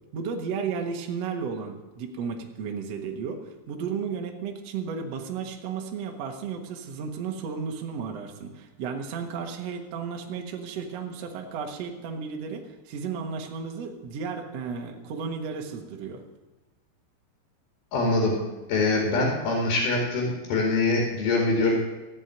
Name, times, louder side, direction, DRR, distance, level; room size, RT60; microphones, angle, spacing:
voice 1, 0.1-16.2, right 6 dB, 65° right, 3 dB, 1.5 m, -33 dB
voice 2, 17.9-18.3 18.7-21.7, left 3 dB, 60° left, -1 dB, 3.8 m, -24 dB
14.5 x 7.6 x 9.0 m, 1.1 s
omnidirectional pair, 5.2 m